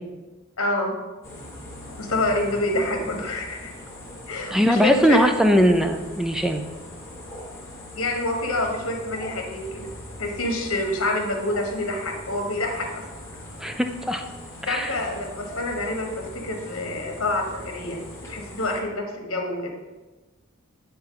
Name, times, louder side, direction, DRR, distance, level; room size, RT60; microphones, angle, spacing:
voice 1, 0.6-0.9 2.0-3.7 4.3-5.2 7.9-9.9 10.2-13.0 14.7-18.0 18.3-19.7, left 2 dB, 70° left, 2 dB, 1.3 m, -27 dB
sound 1, 1.2-18.8, left 1 dB, 15° left, 1.6 m, -41 dB
voice 2, 4.5-6.6 13.6-14.2 14.6-15.0, equal, ahead, 6 dB, 0.4 m, -20 dB
8.7 x 4.3 x 3.8 m, 1.2 s
head